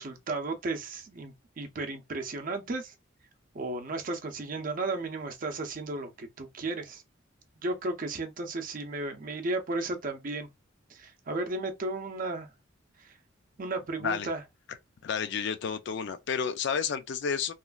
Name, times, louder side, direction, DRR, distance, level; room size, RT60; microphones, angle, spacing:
voice 1, 0.0-2.9 3.5-7.0 7.6-10.5 10.9-12.5 13.0-13.1 13.6-14.4, right 2 dB, 45° right, 0.5 m, -34 dB
voice 2, 15.0-17.5, left 6 dB, 60° left, 0.4 m, -31 dB
3.1 x 2.3 x 2.3 m
head